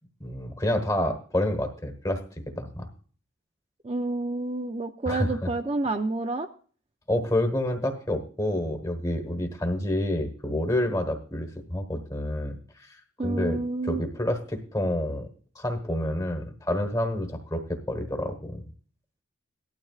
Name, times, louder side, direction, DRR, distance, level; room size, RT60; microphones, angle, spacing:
voice 1, 0.2-2.2 2.5-2.9 5.1-5.3 7.1-13.0 13.2-15.3 15.5-18.6, left 1 dB, 15° left, 6 dB, 1.3 m, -28 dB
voice 2, 3.8-6.5 13.2-14.0, right 2 dB, 30° right, 5 dB, 0.5 m, -29 dB
17.5 x 12.0 x 2.4 m, 0.42 s
head